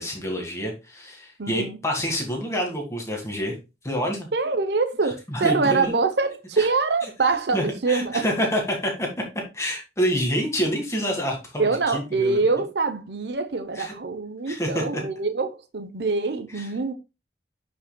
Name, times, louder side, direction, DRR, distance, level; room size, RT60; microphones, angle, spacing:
voice 1, 0.0-3.6 3.8-4.3 5.3-5.9 6.6-6.7 7.5-9.1 9.5-12.4 13.8-13.9 14.5-15.0 16.5-16.7, equal, 15° left, 1.9 m, -27 dB
voice 2, 1.4-1.8 4.3-8.3 11.6-16.9, right 4 dB, 75° right, 0.8 m, -24 dB
9.7 x 5.4 x 2.3 m
head